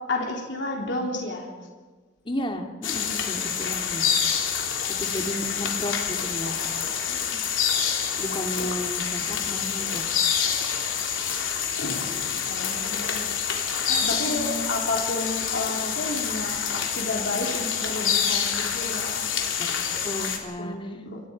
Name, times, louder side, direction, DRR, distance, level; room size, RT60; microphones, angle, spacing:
voice 1, 0.0-1.5 7.1-7.4 8.6-8.7 12.5-13.2 13.9-16.6 16.9-19.2 20.2-20.3 20.6-21.2, left 2 dB, 65° left, 0 dB, 3.6 m, -31 dB
voice 2, 2.2-4.0 5.0-6.6 8.2-10.0 14.0-14.8 19.6-19.7 20.0-20.9, equal, 25° left, 4 dB, 2.5 m, -33 dB
sound 1, 2.8-20.4, left 7 dB, 90° left, 3.5 m, -27 dB
28.5 x 25.0 x 5.3 m, 1.3 s
head